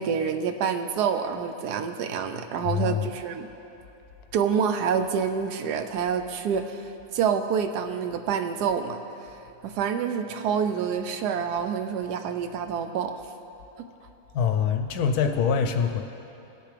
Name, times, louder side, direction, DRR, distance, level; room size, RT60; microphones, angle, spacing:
voice 1, 0.0-3.5 4.3-13.2, right 7 dB, 75° right, 7 dB, 1.1 m, -27 dB
voice 2, 2.6-3.0 14.3-16.0, left 7 dB, 70° left, 5 dB, 1.0 m, -24 dB
18.0 x 6.6 x 3.3 m, 2.9 s
omnidirectional pair, 1.8 m